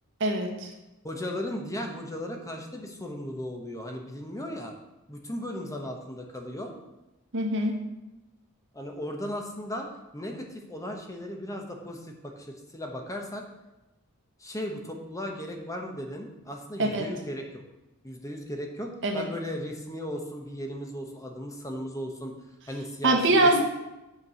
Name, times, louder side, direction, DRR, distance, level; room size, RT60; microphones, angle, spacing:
voice 1, 0.2-0.7 7.3-7.8 16.8-17.1 19.0-19.3 23.0-23.6, right 2 dB, 60° right, 3 dB, 1.4 m, -23 dB
voice 2, 1.0-4.7 5.1-6.7 8.7-9.9 10.1-13.4 14.4-17.6 18.0-22.4 22.7-23.5, left 1 dB, 15° left, 2 dB, 1.0 m, -36 dB
8.3 x 4.7 x 6.9 m, 0.98 s
head